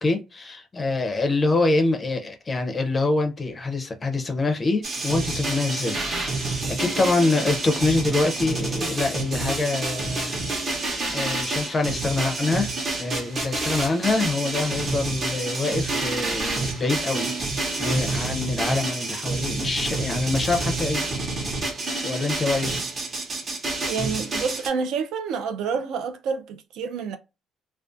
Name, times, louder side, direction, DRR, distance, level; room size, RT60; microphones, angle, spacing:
voice 1, 0.0-6.5 6.8-10.8 11.1-12.7 13.0-17.3 17.8-21.1 22.0-22.7, left 3 dB, 20° left, 0.5 m, -25 dB
sound 1, 4.8-24.7, right 2 dB, 35° right, 0.8 m, -28 dB
voice 2, 23.9-27.2, right 5 dB, 70° right, 0.4 m, -28 dB
2.3 x 2.2 x 2.5 m
cardioid pair, 150°, 0 cm